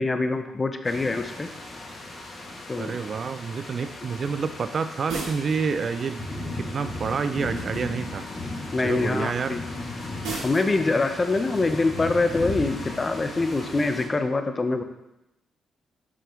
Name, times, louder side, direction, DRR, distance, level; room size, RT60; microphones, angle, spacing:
voice 1, 0.0-1.5 2.7-3.0 8.7-9.6 10.4-14.8, left 3 dB, 35° left, 8 dB, 0.7 m, -24 dB
sound 1, 0.8-14.0, left 2 dB, 50° left, 1.7 m, -36 dB
voice 2, 2.7-6.3 6.6-8.2 8.8-9.6, right 5 dB, 55° right, 11 dB, 0.4 m, -28 dB
sound 2, 5.1-5.7 7.5-8.0 10.2-10.7, right 3 dB, 80° right, 1.9 m, -34 dB
5.9 x 4.8 x 3.7 m, 0.90 s
hypercardioid pair, 50°, 0 cm